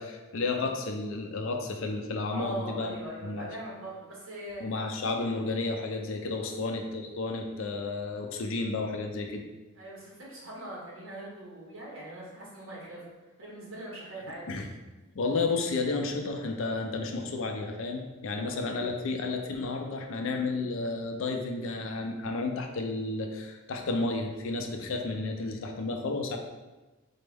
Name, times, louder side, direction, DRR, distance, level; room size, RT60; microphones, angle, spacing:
voice 1, 0.0-3.5 4.6-9.4 14.5-14.7 15.1-26.4, left 3 dB, 65° left, 4 dB, 0.4 m, -32 dB
voice 2, 2.3-4.6 6.4-6.6 9.7-13.0 13.4-14.5 18.3-18.6, right 1 dB, 70° right, -5 dB, 1.3 m, -41 dB
4.3 x 2.1 x 3.3 m, 1.1 s
head